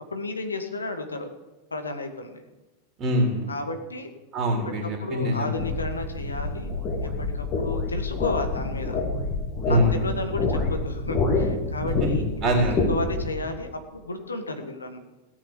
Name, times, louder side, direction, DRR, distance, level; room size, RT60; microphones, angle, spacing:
voice 1, 0.1-1.3 1.7-2.4 3.5-4.1 4.7-9.0 9.7-12.5 12.9-15.0, left 2 dB, 75° left, 6 dB, 1.7 m, -33 dB
voice 2, 3.0-3.5 4.3-5.6 9.6-9.9 11.8-12.9, equal, 30° right, 1 dB, 3.2 m, -24 dB
sound 1, 5.6-13.3, left 3 dB, 35° left, 3.9 m, -27 dB
17.0 x 8.6 x 7.1 m, 1.1 s
figure-of-eight pair, 90°, 0 cm